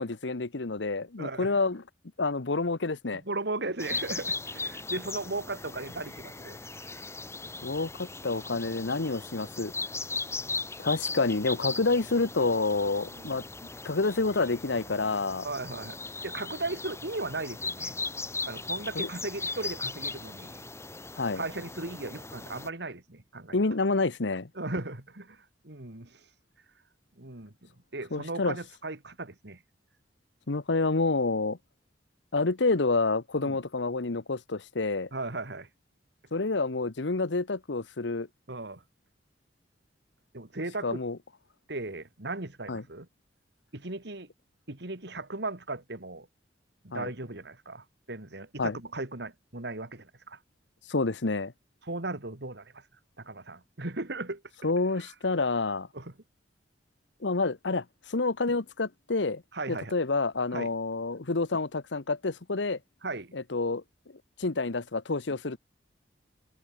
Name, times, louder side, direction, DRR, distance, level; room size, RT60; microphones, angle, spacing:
voice 1, 0.0-1.8 2.2-3.2 7.6-9.7 10.8-13.4 13.8-15.5 18.9-19.1 21.2-21.4 23.5-24.5 28.1-28.6 30.5-31.6 32.3-35.1 36.3-38.3 40.8-41.2 42.7-42.8 46.9-47.1 48.6-48.8 50.9-51.5 54.6-55.9 57.2-59.4 59.7-62.8 63.3-63.8 64.4-65.6, left 3 dB, 80° left, 1.1 m, -28 dB
voice 2, 1.2-1.5 3.1-6.6 6.9-7.0 10.4-10.6 13.1-13.4 15.4-18.0 18.5-20.6 21.3-23.6 24.6-25.4 25.6-26.2 27.2-29.6 33.4-33.6 35.1-35.7 38.5-38.8 40.3-41.0 41.7-43.1 43.7-44.3 44.7-46.3 46.8-50.4 51.8-52.8 53.2-54.4 55.9-56.1 59.5-59.9 60.5-60.7 63.0-63.4, right 2 dB, 65° right, 2.7 m, -37 dB
sound 1, 3.8-22.7, left 3 dB, 15° left, 2.4 m, -38 dB
head